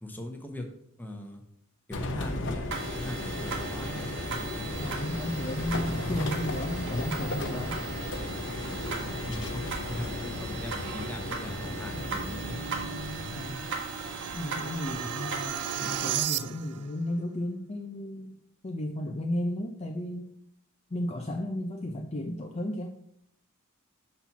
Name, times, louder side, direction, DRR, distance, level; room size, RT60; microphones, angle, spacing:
voice 1, 0.0-0.7 1.0-1.4 1.9-2.7 3.0-4.1 9.3-12.6, left 1 dB, 10° left, 3 dB, 1.0 m, -39 dB
sound 1, 1.9-13.5, left 2 dB, 55° left, 0.8 m, -35 dB
sound 2, 2.7-16.2, right 3 dB, 60° right, 1.3 m, -38 dB
voice 2, 4.8-7.8 13.3-13.7 14.3-18.4 18.6-20.3 20.9-23.0, left 1 dB, 30° left, 3 dB, 0.5 m, -34 dB
sound 3, 11.7-16.9, right 11 dB, 90° right, 0.4 m, -36 dB
5.9 x 4.3 x 5.7 m, 0.74 s
head